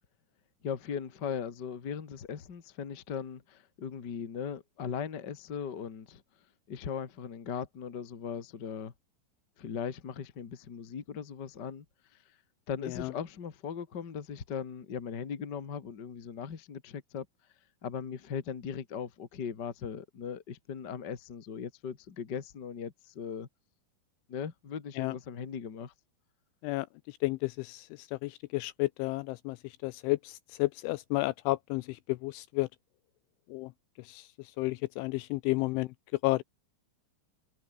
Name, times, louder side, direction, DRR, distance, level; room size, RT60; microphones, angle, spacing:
voice 1, 0.6-6.2 6.7-8.9 9.6-11.8 12.7-17.2 17.8-23.5 24.3-25.9, left 7 dB, 65° left, 1.0 m, -38 dB
voice 2, 26.6-32.7 33.5-33.7 34.0-35.9 36.2-36.4, left 21 dB, 85° left, 2.8 m, -32 dB
omnidirectional pair, 5.9 m